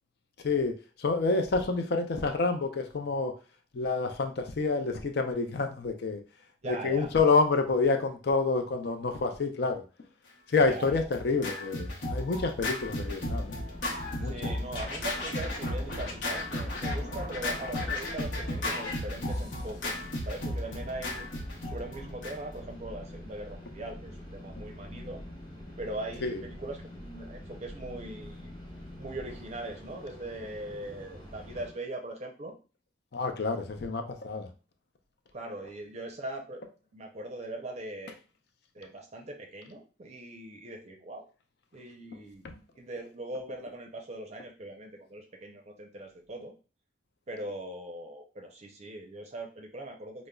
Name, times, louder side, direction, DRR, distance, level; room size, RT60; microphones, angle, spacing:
voice 1, 0.4-3.3 3.7-6.2 6.6-9.8 10.5-13.6 14.2-14.6 26.2-26.4 33.1-34.5 42.4-42.6, left 4 dB, 60° left, 6 dB, 0.5 m, -28 dB
voice 2, 6.6-7.1 10.7-11.0 14.2-20.0 20.2-21.3 21.6-25.2 25.8-28.5 29.0-32.5 35.3-36.6 36.9-38.2 38.7-41.3 41.7-42.5 42.8-46.5 47.3-50.3, right 1 dB, 35° right, 2 dB, 0.5 m, -40 dB
Scratching (performance technique), 10.5-22.6, left 1 dB, 75° left, 0.8 m, -34 dB
sound 1, 12.8-31.7, left 1 dB, 25° left, 0.9 m, -45 dB
5.0 x 2.0 x 2.3 m, 0.35 s
head